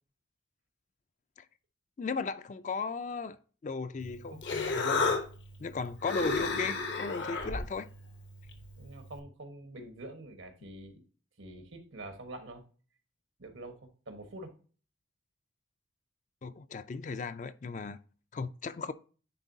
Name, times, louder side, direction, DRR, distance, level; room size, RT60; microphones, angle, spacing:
voice 1, 2.0-3.4 3.6-5.2 5.6-7.9 16.4-18.0 18.3-18.9, left 4 dB, 40° left, 0.3 m, -36 dB
Human voice, 4.0-9.2, left 3 dB, 65° left, 0.9 m, -34 dB
voice 2, 8.8-11.0 11.4-12.6 13.4-14.5, right 1 dB, 90° right, 1.3 m, -46 dB
9.9 x 3.8 x 2.7 m
head